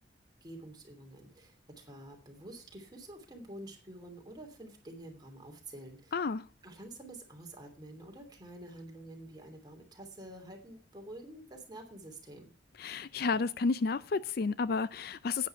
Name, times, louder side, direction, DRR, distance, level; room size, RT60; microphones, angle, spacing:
voice 1, 0.4-6.3 6.6-12.5, right 1 dB, 20° right, 3.0 m, -48 dB
voice 2, 6.1-6.4 12.8-15.5, left 4 dB, 55° left, 0.4 m, -31 dB
10.5 x 9.5 x 4.5 m
head